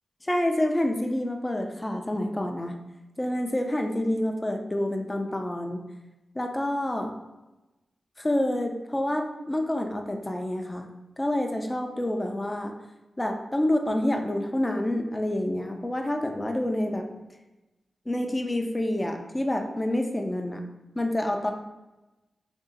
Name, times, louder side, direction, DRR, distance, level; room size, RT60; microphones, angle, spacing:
voice 1, 0.3-2.8 3.2-5.8 6.4-7.1 8.2-10.9 11.2-12.7 13.2-17.1 18.1-20.6 21.0-21.5, left 1 dB, 20° left, 3 dB, 0.5 m, -28 dB
3.0 x 2.7 x 3.7 m, 1.0 s
cardioid pair, 55°, 0 cm